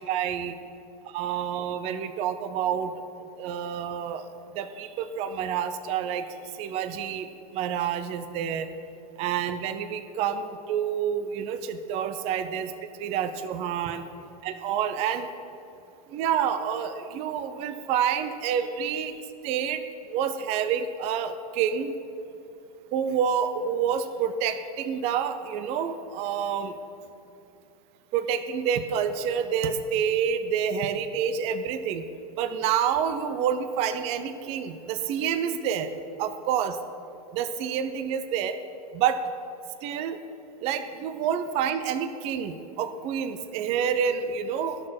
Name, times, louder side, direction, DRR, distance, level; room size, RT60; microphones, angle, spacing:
voice 1, 0.1-0.5 1.1-2.9 3.4-4.2 4.5-6.3 6.6-7.3 7.5-8.7 9.2-12.7 13.0-14.0 14.4-15.3 16.1-19.1 19.4-19.8 20.1-21.9 22.9-26.7 28.1-32.0 32.4-35.9 36.2-36.8 37.3-38.6 38.9-39.2 39.8-40.2 40.6-44.8, right 8 dB, 30° right, 9 dB, 0.5 m, -28 dB
13.0 x 6.5 x 5.9 m, 2.8 s
supercardioid pair, 150°, 20 cm